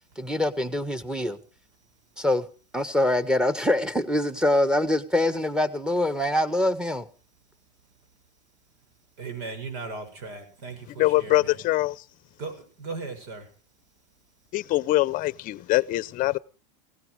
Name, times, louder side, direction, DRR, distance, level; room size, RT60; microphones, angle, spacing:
voice 1, 0.2-1.4 2.2-2.4 2.7-7.1, left 1 dB, 5° right, 1.6 m, -24 dB
voice 2, 9.2-11.6 12.4-13.5, right 4 dB, 70° right, 7.0 m, -37 dB
voice 3, 11.0-11.9 14.5-16.4, left 17 dB, 40° left, 0.7 m, -23 dB
17.5 x 16.0 x 4.9 m
supercardioid pair, 115°, 20 cm